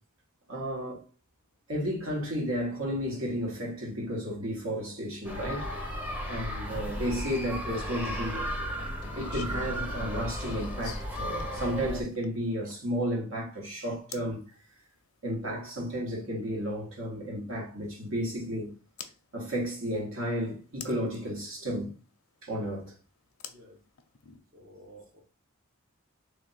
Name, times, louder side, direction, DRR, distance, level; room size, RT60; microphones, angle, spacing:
voice 1, 0.5-1.0 1.7-5.7 6.3-8.5 9.1-14.4 15.2-18.7 19.3-21.9 22.4-22.9, equal, 70° right, 1.2 m, -33 dB
sound 1, 5.2-12.0, equal, 10° right, 0.7 m, -35 dB
sound 2, 7.0-13.0 14.1-14.4 16.3-16.4 19.0-19.1 20.8-21.2 23.4-24.4, left 7 dB, 85° left, 0.6 m, -46 dB
voice 2, 24.5-25.2, right 1 dB, 45° right, 0.9 m, -52 dB
3.3 x 2.6 x 4.0 m
head